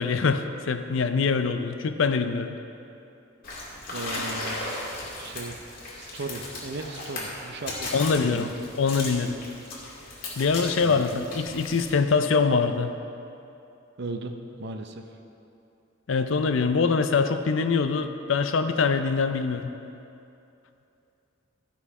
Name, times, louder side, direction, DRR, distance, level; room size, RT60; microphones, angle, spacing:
voice 1, 0.0-2.6 7.9-8.5 8.8-9.4 10.4-12.9 16.1-19.8, left 5 dB, 70° left, 8 dB, 0.5 m, -24 dB
sound 1, 3.4-11.9, left 2 dB, 45° left, 2.2 m, -36 dB
voice 2, 3.9-4.8 5.2-5.6 6.0-8.5 10.8-11.0 11.5-11.7 14.0-15.0, right 2 dB, 55° right, 5 dB, 0.7 m, -37 dB
13.0 x 5.9 x 4.8 m, 2.8 s
head